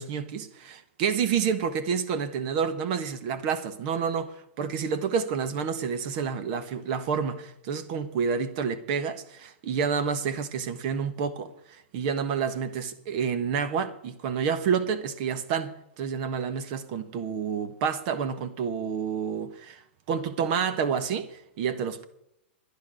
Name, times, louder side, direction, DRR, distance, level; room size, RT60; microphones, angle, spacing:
voice 1, 0.0-19.8 20.1-22.0, right 6 dB, 45° right, 1.3 m, -29 dB
11.0 x 10.5 x 6.3 m
hypercardioid pair, 145°, 7 cm